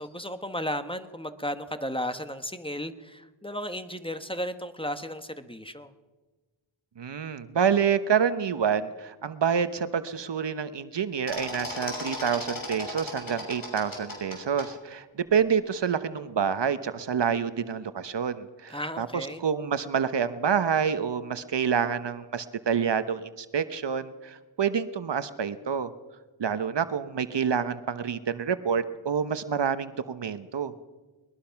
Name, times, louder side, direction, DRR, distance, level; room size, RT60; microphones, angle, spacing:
voice 1, 0.0-5.9 18.7-19.4, equal, 10° left, 9 dB, 1.3 m, -34 dB
voice 2, 7.0-25.9 26.4-30.7, right 7 dB, 60° right, 12 dB, 1.1 m, -28 dB
sound 1, 11.3-14.7, left 2 dB, 40° left, 6.6 m, -36 dB
21.5 x 21.0 x 5.9 m, 1.2 s
cardioid pair, 75°, 49 cm